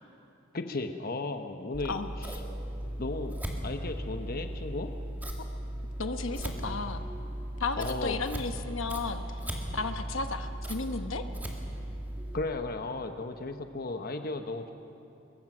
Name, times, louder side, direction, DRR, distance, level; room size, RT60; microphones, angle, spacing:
voice 1, 0.5-2.4 3.0-3.4 3.6-4.9 7.8-8.2 12.3-14.7, left 2 dB, 50° left, 6 dB, 1.0 m, -35 dB
Scissors, 1.7-12.4, right 1 dB, 10° right, 2.0 m, -37 dB
voice 2, 6.0-7.0 7.6-9.4 9.7-11.3, left 4 dB, 75° left, 7 dB, 1.1 m, -34 dB
23.0 x 21.5 x 6.1 m, 2.7 s
head